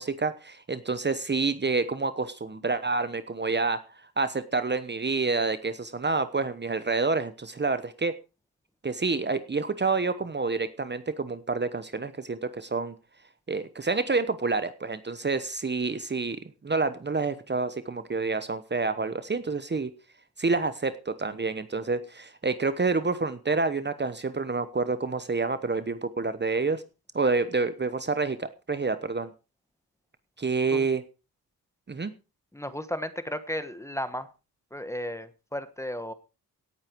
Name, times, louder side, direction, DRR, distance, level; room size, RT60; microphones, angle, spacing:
voice 1, 0.0-3.8 4.2-8.1 8.8-12.9 13.5-16.4 16.6-19.9 20.4-26.8 27.1-29.3 30.4-31.0 31.9-32.1, right 4 dB, 30° right, 12 dB, 1.0 m, -28 dB
voice 2, 32.5-34.3 34.7-36.1, left 1 dB, 5° left, 12 dB, 1.2 m, -34 dB
17.5 x 8.8 x 4.6 m, 0.31 s
wide cardioid pair, 120°, 38 cm